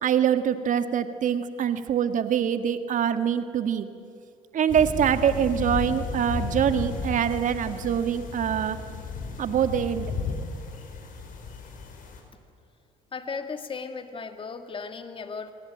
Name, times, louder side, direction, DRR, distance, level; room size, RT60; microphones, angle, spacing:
voice 1, 0.0-3.9 4.5-8.8 9.4-10.1, right 9 dB, 50° right, 10 dB, 1.8 m, -24 dB
sound 1, 4.7-12.2, left 4 dB, 55° left, 5.2 m, -34 dB
voice 2, 13.1-15.5, left 5 dB, 30° left, 8 dB, 1.9 m, -36 dB
29.5 x 20.0 x 9.2 m, 2.5 s
hypercardioid pair, 60°, 17 cm